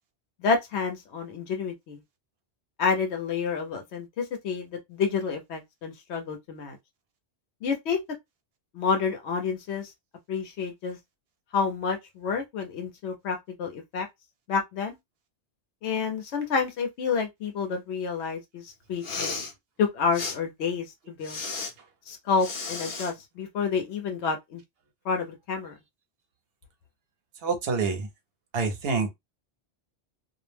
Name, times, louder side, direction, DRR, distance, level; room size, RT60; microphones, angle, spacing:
voice 1, 0.4-2.0 2.8-6.8 7.6-8.0 8.7-9.9 10.3-11.0 11.5-14.1 14.5-15.0 15.8-19.3 19.8-21.4 22.1-24.6 25.0-25.8, left 5 dB, 85° left, 0.9 m, -29 dB
Respiratory sounds, 18.9-19.5 20.1-20.4 21.2-21.7 22.4-23.1, left 4 dB, 55° left, 0.9 m, -33 dB
voice 2, 27.4-28.1 28.5-29.1, right 4 dB, 65° right, 0.9 m, -27 dB
2.4 x 2.1 x 3.1 m
omnidirectional pair, 1.1 m